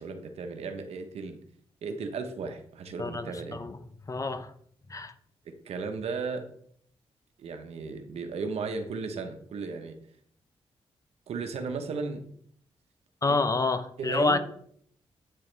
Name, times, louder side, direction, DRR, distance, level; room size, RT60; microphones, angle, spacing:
voice 1, 0.0-1.4 1.8-3.6 5.5-6.4 7.4-10.0 11.3-12.2 13.3-13.4 14.0-14.4, right 4 dB, 80° right, 6 dB, 1.1 m, -35 dB
voice 2, 3.0-3.8 4.1-4.5 4.9-5.1 13.2-14.4, left 3 dB, 30° left, 10 dB, 0.8 m, -28 dB
8.7 x 6.9 x 3.4 m, 0.64 s
cardioid pair, 75°, 10 cm